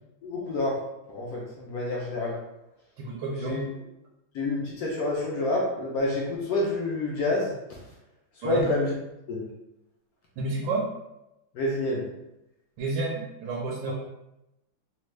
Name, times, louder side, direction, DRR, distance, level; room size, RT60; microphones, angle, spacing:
voice 1, 0.2-0.8 1.1-2.4 3.4-3.6 4.3-7.5 8.4-8.9 9.3-9.4 11.5-12.0, left 2 dB, 70° left, -3 dB, 0.8 m, -28 dB
voice 2, 3.0-3.8 8.4-8.7 10.4-10.9 12.8-13.9, right 3 dB, 75° right, -3 dB, 1.2 m, -30 dB
3.4 x 2.2 x 3.1 m, 0.90 s
omnidirectional pair, 2.1 m